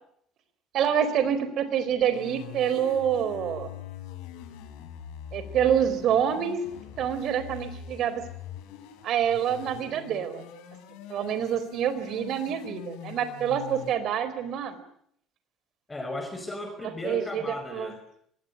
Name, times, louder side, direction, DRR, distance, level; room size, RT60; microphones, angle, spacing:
voice 1, 0.7-3.7 5.3-6.6 7.0-8.2 9.0-10.4 11.1-14.8 17.0-17.4 17.7-17.9, right 9 dB, 55° right, 12 dB, 4.2 m, -26 dB
sound 1, 2.1-13.9, left 9 dB, 90° left, 5.1 m, -43 dB
voice 2, 15.9-18.0, left 2 dB, 10° left, 7 dB, 5.0 m, -36 dB
25.5 x 21.0 x 9.9 m, 0.69 s
cardioid pair, 140°, 0 cm